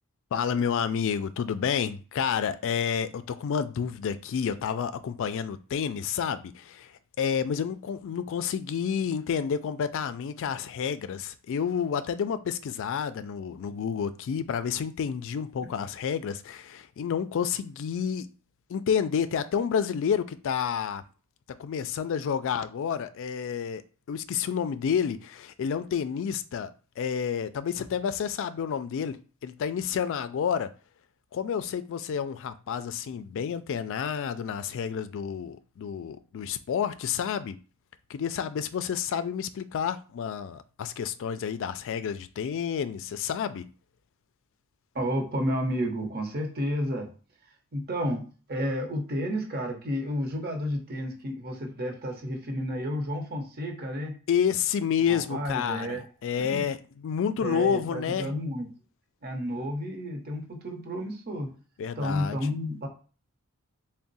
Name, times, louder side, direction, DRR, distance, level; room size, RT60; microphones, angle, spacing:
voice 1, 0.3-6.9 7.2-18.3 18.7-21.0 21.6-23.8 24.1-29.2 29.4-30.7 31.3-37.6 38.1-43.7 54.3-58.3 61.8-62.4, left 7 dB, 65° left, 0.3 m, -29 dB
voice 2, 44.9-47.1 47.7-48.2 48.5-54.1 55.1-56.1 56.4-56.6 57.4-58.7 59.2-61.5 62.0-62.9, equal, 50° right, 0.9 m, -31 dB
3.5 x 2.1 x 4.0 m
head